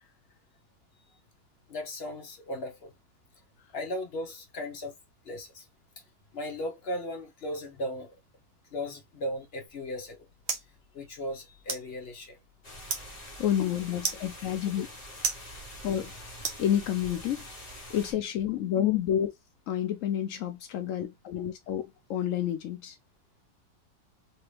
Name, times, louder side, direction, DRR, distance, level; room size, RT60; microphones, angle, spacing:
voice 1, 1.7-2.9 3.7-4.9 5.2-5.6 6.3-8.1 8.7-10.2 10.9-12.4, left 1 dB, 40° left, 1.1 m, -36 dB
sound 1, 9.7-17.2, right 5 dB, 45° right, 0.9 m, -39 dB
sound 2, 12.6-18.1, left 1 dB, 25° left, 1.4 m, -45 dB
voice 2, 13.4-14.9 15.8-16.1 16.6-17.4 17.9-19.3 19.7-23.0, left 10 dB, 80° left, 0.7 m, -29 dB
3.3 x 2.8 x 3.2 m
omnidirectional pair, 1.9 m